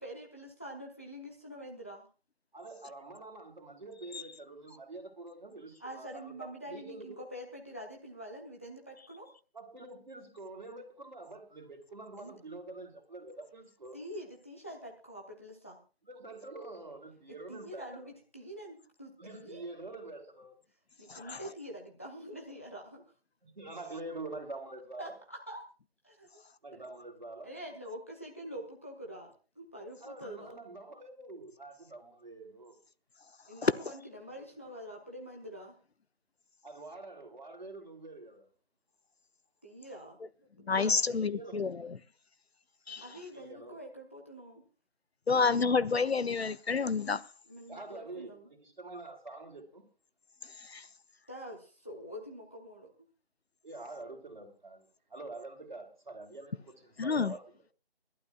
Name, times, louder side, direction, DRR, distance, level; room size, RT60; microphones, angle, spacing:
voice 1, 0.0-2.1 5.8-9.3 12.2-12.4 13.9-15.8 17.3-19.6 21.0-23.0 25.0-25.7 26.0-26.4 26.7-26.8 27.4-30.5 33.5-35.7 39.6-40.2 40.6-41.3 43.0-44.6 47.5-48.5 51.3-52.9, equal, 15° left, 0.8 m, -46 dB
voice 2, 2.5-7.3 9.5-14.0 16.1-18.0 19.2-20.5 23.4-25.1 26.6-27.5 30.0-32.8 36.6-38.5 41.2-41.6 43.3-43.8 47.7-48.4 48.8-49.8 53.6-57.4, right 2 dB, 50° right, 3.0 m, -46 dB
voice 3, 40.7-42.0 42.9-43.0 45.3-47.2 50.6-50.8 57.0-57.3, left 5 dB, 85° left, 0.7 m, -29 dB
27.0 x 11.5 x 2.4 m
figure-of-eight pair, 165°, 31 cm